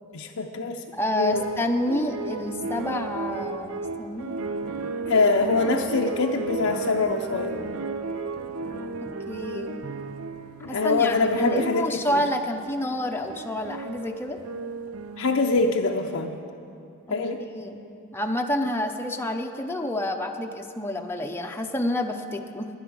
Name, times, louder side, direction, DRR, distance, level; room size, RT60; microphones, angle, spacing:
voice 1, 0.1-0.8 1.1-1.4 5.1-7.6 10.6-12.2 15.2-16.4 17.1-17.4, left 3 dB, 75° left, 1 dB, 0.6 m, -24 dB
voice 2, 0.9-4.4 9.3-9.8 10.7-14.4 17.1-17.8 18.1-22.7, left 1 dB, 10° left, 3 dB, 0.6 m, -29 dB
sound 1, 1.3-12.4 12.9-15.7, right 3 dB, 90° right, 0.6 m, -34 dB
12.0 x 10.0 x 6.1 m, 2.6 s
head